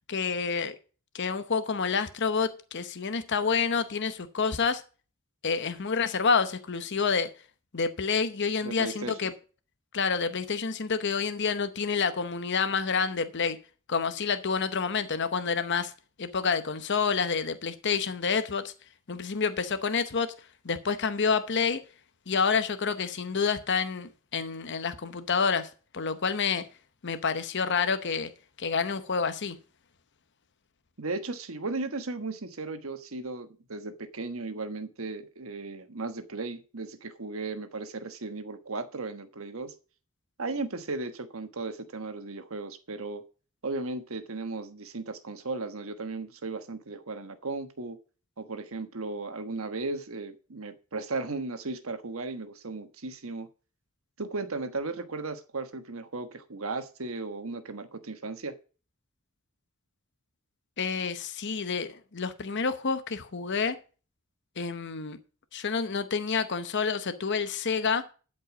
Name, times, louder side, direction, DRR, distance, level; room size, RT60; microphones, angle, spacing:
voice 1, 0.1-0.8 1.1-4.8 5.4-7.3 7.7-9.3 9.9-13.6 13.9-15.9 16.2-18.7 19.1-20.3 20.6-21.8 22.3-26.7 27.0-28.3 28.6-29.6 60.8-63.8 64.6-65.2 65.5-68.0, left 5 dB, 55° left, 0.9 m, -28 dB
voice 2, 8.6-9.2 31.0-39.7 40.4-43.2 43.6-48.0 48.4-53.5 54.2-58.5, right 3 dB, 75° right, 1.3 m, -36 dB
12.0 x 5.4 x 6.0 m
head